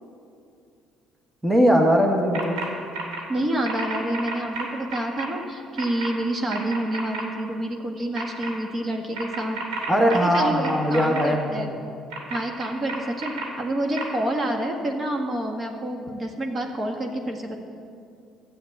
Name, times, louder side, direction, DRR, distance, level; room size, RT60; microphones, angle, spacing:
voice 1, 1.4-2.6 9.9-11.7, equal, 5° right, 1 dB, 1.5 m, -20 dB
sound 1, 2.3-2.7 2.9-3.2 3.6-5.3 5.8-6.1 6.5-7.2 8.1-8.5 9.1-11.2 12.1-13.4 14.0-14.1, right 3 dB, 90° right, 2.7 m, -31 dB
voice 2, 3.3-9.6 10.2-11.7 12.3-17.6, right 1 dB, 35° right, 3 dB, 1.7 m, -28 dB
12.0 x 8.1 x 8.7 m, 2.5 s
cardioid pair, 95°, 0 cm